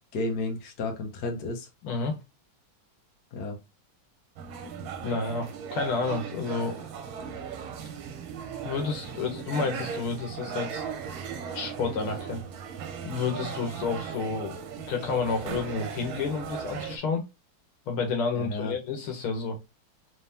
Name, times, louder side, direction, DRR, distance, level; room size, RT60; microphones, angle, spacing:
voice 1, 0.1-1.7 3.3-3.6 18.3-18.7, left 2 dB, 55° left, 1.4 m, -32 dB
voice 2, 1.8-2.2 5.0-6.8 8.6-10.8 11.5-12.4 13.0-14.6 14.9-17.2 17.9-19.6, left 4 dB, 80° left, 2.0 m, -30 dB
sound 1, 4.4-17.0, right 7 dB, 75° right, 1.6 m, -37 dB
4.0 x 3.5 x 2.7 m
omnidirectional pair, 2.3 m